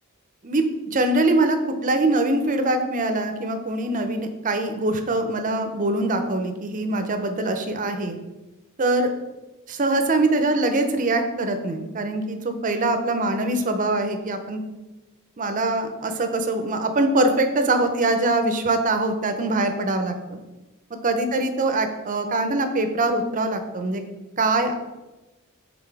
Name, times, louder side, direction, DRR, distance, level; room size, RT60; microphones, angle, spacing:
voice 1, 0.9-8.2 8.8-9.1 9.7-14.6 15.4-20.4 21.0-24.0 24.4-24.7, right 2 dB, 40° right, 7 dB, 0.6 m, -23 dB
5.9 x 3.5 x 4.7 m, 1.1 s
head